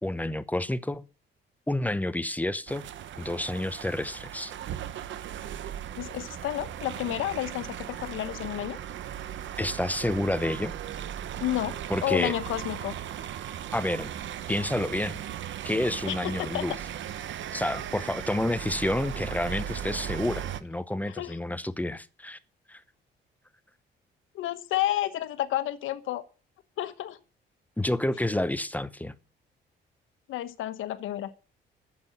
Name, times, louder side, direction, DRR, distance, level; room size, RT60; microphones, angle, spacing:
voice 1, 0.0-1.0 1.7-2.9 3.2-4.5 9.6-10.7 11.9-12.3 13.7-14.1 14.5-15.2 15.6-16.7 17.5-22.4 22.7-22.8 27.8-29.1, left 1 dB, 10° left, 0.8 m, -29 dB
sound 1, 2.7-20.6, right 10 dB, 70° right, 1.0 m, -37 dB
voice 2, 6.0-8.8 11.4-11.8 12.0-12.9 16.1-16.6 21.1-21.3 24.3-26.2 26.8-27.2 30.3-31.3, left 13 dB, 85° left, 1.2 m, -31 dB
9.8 x 7.9 x 9.2 m
cardioid pair, 90°, 20 cm